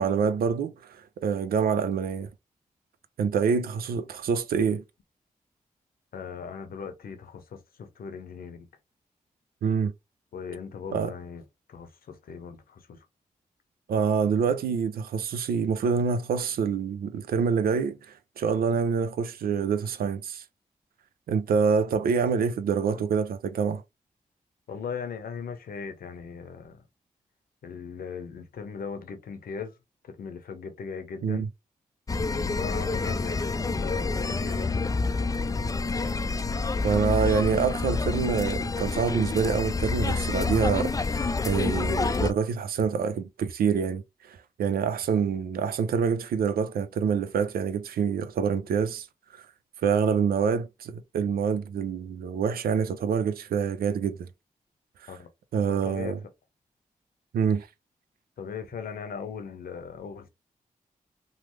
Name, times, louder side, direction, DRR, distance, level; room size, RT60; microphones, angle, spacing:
voice 1, 0.0-2.3 3.2-4.8 9.6-9.9 10.9-11.1 13.9-20.4 21.3-23.8 31.2-31.5 36.8-44.0 44.3-49.1 49.3-49.5 49.8-54.3 55.5-56.2 57.3-57.7, right 6 dB, 85° right, 0.4 m, -26 dB
voice 2, 6.1-8.7 10.3-13.0 22.9-23.0 24.7-26.8 27.6-29.8 30.0-31.5 32.6-35.7 55.1-55.3 55.7-56.2 58.4-60.3, left 6 dB, 85° left, 0.8 m, -39 dB
sound 1, 32.1-42.3, left 3 dB, 25° left, 0.3 m, -28 dB
3.2 x 2.0 x 3.0 m
cardioid pair, 45°, 15 cm